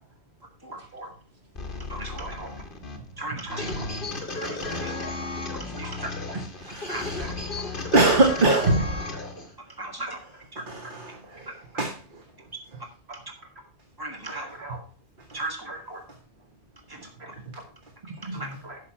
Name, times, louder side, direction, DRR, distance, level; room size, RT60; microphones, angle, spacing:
voice 1, 0.7-1.1 2.2-2.5 3.5-3.9 4.7-5.3 5.8-6.4 7.2-7.9 8.6-9.5 10.1-10.2 11.2-11.5 14.3-14.8 15.7-16.0 17.2-17.4 18.6-18.8, right 2 dB, 65° right, 2 dB, 2.3 m, -41 dB
sound 1, 1.6-9.5, left 3 dB, 50° left, 1.8 m, -34 dB
voice 2, 1.9-2.4 3.2-3.7 4.4-5.0 5.5-6.1 6.9-7.0 9.8-10.2 10.5-10.6 14.0-14.5 15.3-15.7 16.9-17.1 18.3-18.5, right 2 dB, 20° right, 1 dB, 2.2 m, -36 dB
voice 3, 6.6-7.2 7.9-8.8 10.7-11.5 11.8-12.2 18.1-18.6, right 2 dB, 45° right, 2 dB, 1.5 m, -23 dB
11.5 x 6.6 x 4.6 m, 0.39 s
omnidirectional pair, 1.2 m